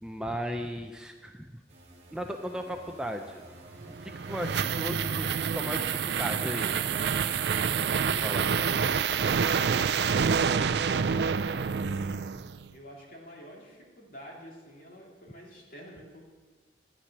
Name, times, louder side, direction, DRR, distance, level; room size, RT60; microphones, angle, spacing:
voice 1, 0.0-1.6 2.1-3.4 3.9-6.7 8.0-8.5, equal, 5° right, 4 dB, 0.5 m, -36 dB
sound 1, 1.7-11.2, right 2 dB, 35° right, 1.8 m, -47 dB
sound 2, 3.8-12.7, right 6 dB, 65° right, 0.4 m, -27 dB
voice 2, 11.8-12.2 12.7-16.2, equal, 50° left, -2 dB, 2.8 m, -49 dB
12.0 x 9.9 x 6.1 m, 1.4 s
head